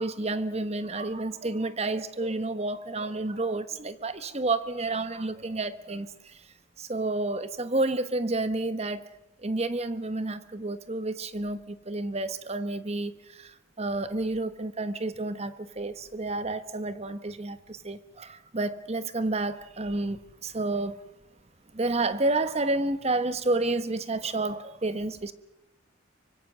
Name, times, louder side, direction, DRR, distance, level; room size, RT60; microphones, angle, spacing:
voice 1, 0.0-6.5 6.8-9.0 9.4-21.0 21.7-25.3, right 2 dB, 30° right, 1.1 m, -30 dB
24.5 x 24.0 x 6.2 m
head